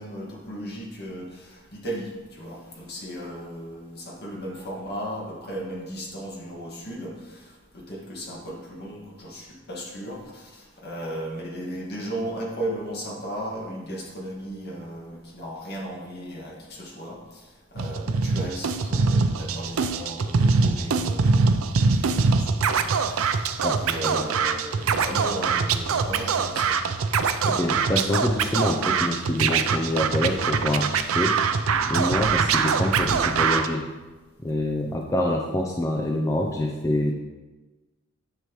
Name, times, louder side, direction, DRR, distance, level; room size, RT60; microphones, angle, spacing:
voice 1, 0.0-17.5 17.7-23.5 23.8-26.8, right 1 dB, 50° left, -2 dB, 1.8 m, -36 dB
Scratching (performance technique), 17.8-33.7, right 5 dB, 85° right, 0.5 m, -23 dB
voice 2, 23.6-24.3 27.4-31.4 31.9-33.8 34.4-37.1, left 1 dB, 15° left, 0 dB, 0.5 m, -26 dB
10.0 x 6.1 x 3.1 m, 1.2 s
head